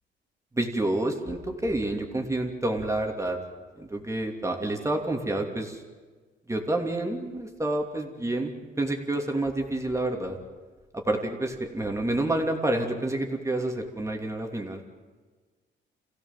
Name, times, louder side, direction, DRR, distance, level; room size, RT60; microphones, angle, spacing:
voice 1, 0.5-3.4 3.8-5.8 6.5-10.4 10.9-14.8, right 1 dB, 15° right, 3 dB, 2.9 m, -28 dB
27.5 x 16.5 x 7.5 m, 1.4 s
cardioid pair, 90°, 20 cm